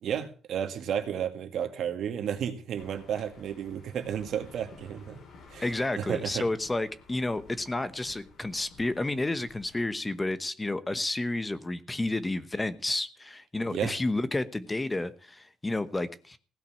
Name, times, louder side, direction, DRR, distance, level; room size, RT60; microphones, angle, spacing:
voice 1, 0.0-5.2 5.5-5.7 5.9-6.4 13.7-13.9, right 9 dB, 70° right, 1.9 m, -32 dB
sound 1, 2.8-9.8, left 4 dB, 65° left, 3.9 m, -54 dB
voice 2, 5.6-16.4, left 2 dB, 15° left, 1.1 m, -31 dB
16.5 x 5.9 x 8.4 m
cardioid pair, 100°, 0 cm